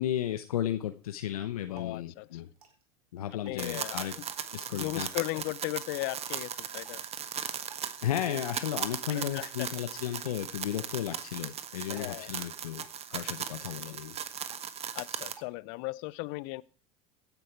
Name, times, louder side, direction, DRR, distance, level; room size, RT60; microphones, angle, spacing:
voice 1, 0.0-2.5 3.1-4.1 4.5-5.1 5.3-5.4 8.0-14.2, left 11 dB, 80° left, 1.0 m, -34 dB
Drip, 1.4-15.9, right 6 dB, 85° right, 3.5 m, -61 dB
voice 2, 1.7-2.4 3.4-4.2 4.7-7.0 9.1-9.7 11.9-12.3 14.9-16.6, left 23 dB, 60° left, 0.7 m, -37 dB
sound 1, 3.6-15.4, right 8 dB, 35° right, 1.4 m, -38 dB
16.5 x 10.5 x 4.6 m
hypercardioid pair, 85°, 18 cm